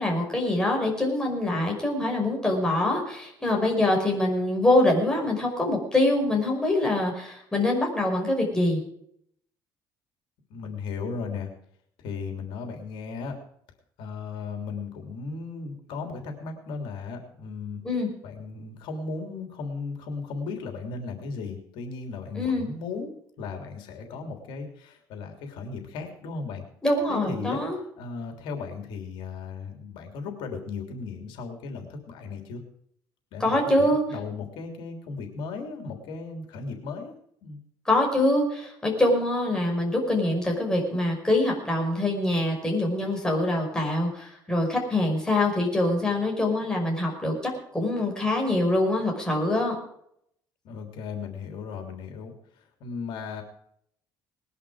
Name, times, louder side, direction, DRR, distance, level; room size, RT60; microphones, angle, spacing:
voice 1, 0.0-8.8 17.8-18.1 22.3-22.7 26.8-27.8 33.4-34.0 37.9-49.8, left 1 dB, 10° left, 0 dB, 5.5 m, -24 dB
voice 2, 10.5-11.5 12.0-13.4 14.0-17.8 18.2-26.6 27.1-27.6 28.0-32.6 33.3-37.1 37.4-37.6 50.6-53.4, left 4 dB, 80° left, 4 dB, 3.2 m, -36 dB
20.0 x 11.0 x 5.0 m, 0.70 s
cardioid pair, 130°, 8 cm